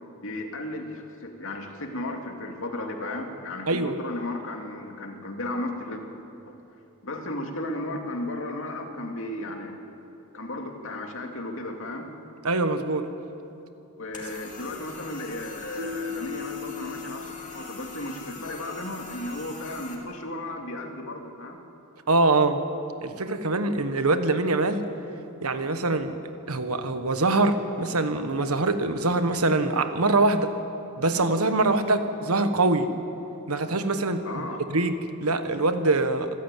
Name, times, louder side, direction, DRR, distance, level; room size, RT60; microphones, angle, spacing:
voice 1, 0.2-6.0 6.5-6.6 7.0-9.7 10.3-12.1 14.0-21.6 34.2-34.6, left 1 dB, 65° left, 3 dB, 2.5 m, -34 dB
voice 2, 3.7-4.0 12.4-13.1 22.1-22.6 23.0-24.9 25.4-26.2 26.5-30.5 31.0-32.9 33.5-34.9 35.2-36.3, right 2 dB, 85° right, 9 dB, 1.4 m, -24 dB
sound 1, 14.1-19.9, left 3 dB, 35° left, 3.2 m, -43 dB
Keyboard (musical), 15.8-18.6, left 7 dB, 60° right, 1.3 m, -38 dB
26.5 x 13.5 x 9.2 m, 2.9 s
head